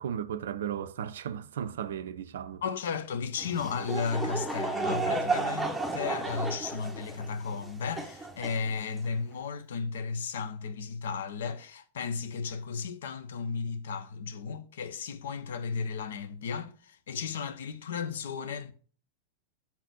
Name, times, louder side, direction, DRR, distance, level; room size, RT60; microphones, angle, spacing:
voice 1, 0.0-2.6, right 9 dB, 60° right, 0.4 m, -35 dB
voice 2, 2.6-18.7, left 5 dB, 60° left, 0.7 m, -34 dB
Laughter / Crowd, 3.4-9.1, right 3 dB, 5° right, 0.9 m, -33 dB
5.9 x 4.0 x 6.0 m
figure-of-eight pair, 90°, 0 cm